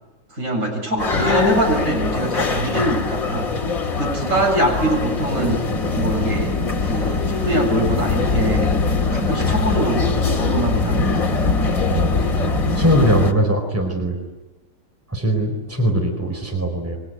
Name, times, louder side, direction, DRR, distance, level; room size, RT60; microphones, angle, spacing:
voice 1, 0.3-3.4 3.8-5.6 5.9-6.5 6.9-11.4, right 1 dB, 45° right, 1 dB, 8.0 m, -23 dB
sound 1, 1.0-13.3, left 3 dB, 50° left, 2.5 m, -22 dB
voice 2, 11.9-12.5 12.7-14.2 15.1-17.0, equal, 10° right, 3 dB, 4.6 m, -20 dB
26.0 x 24.0 x 9.5 m, 1.1 s
omnidirectional pair, 1.9 m